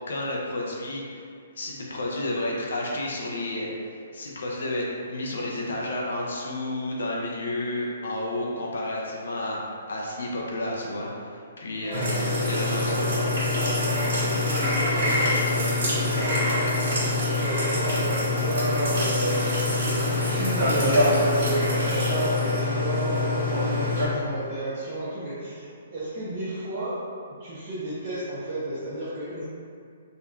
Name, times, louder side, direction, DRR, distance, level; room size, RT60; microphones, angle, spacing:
voice 1, 0.1-1.2 1.6-13.2, left 1 dB, 75° left, -3 dB, 0.5 m, -31 dB
voice 2, 11.7-16.8 17.0-27.0 27.4-29.4, right 1 dB, 45° right, -10 dB, 0.6 m, -33 dB
sound 1, 11.9-24.1, left 2 dB, 70° right, 1.4 m, -24 dB
3.6 x 2.2 x 2.3 m, 2.3 s
hypercardioid pair, 135°, 0 cm